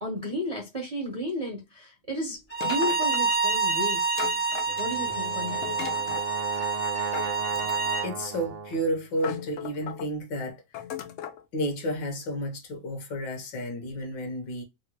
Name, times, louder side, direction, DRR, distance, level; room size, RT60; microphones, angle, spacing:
voice 1, 0.0-4.0 4.8-5.6, left 1 dB, 35° right, 0.6 m, -33 dB
Bowed string instrument, 2.5-8.1, right 4 dB, 30° left, 0.7 m, -27 dB
sound 1, 2.6-3.4 4.2-5.1 5.6-6.3 7.1-8.1 8.7-8.8 9.2-10.1 10.7-11.4, left 9 dB, 90° left, 0.7 m, -37 dB
Brass instrument, 4.7-8.9, right 5 dB, 85° right, 0.6 m, -36 dB
voice 2, 8.0-10.6 11.5-14.6, equal, 70° left, 1.5 m, -31 dB
3.9 x 2.1 x 2.9 m
omnidirectional pair, 2.1 m